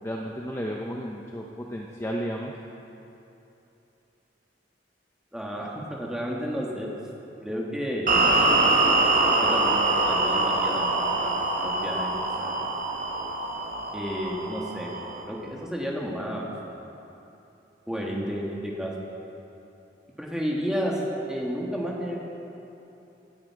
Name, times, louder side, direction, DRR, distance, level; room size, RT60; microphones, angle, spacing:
voice 1, 0.0-1.4 1.7-2.5, equal, 15° left, -1 dB, 0.6 m, -32 dB
voice 2, 5.3-6.9 7.4-8.1 9.4-12.7 13.9-14.9 15.3-16.5 17.9-19.0 20.2-21.0 21.3-22.3, equal, 5° right, -3 dB, 1.7 m, -32 dB
sound 1, 8.1-15.2, right 2 dB, 45° right, 1.2 m, -24 dB
17.0 x 10.0 x 4.8 m, 3.0 s
head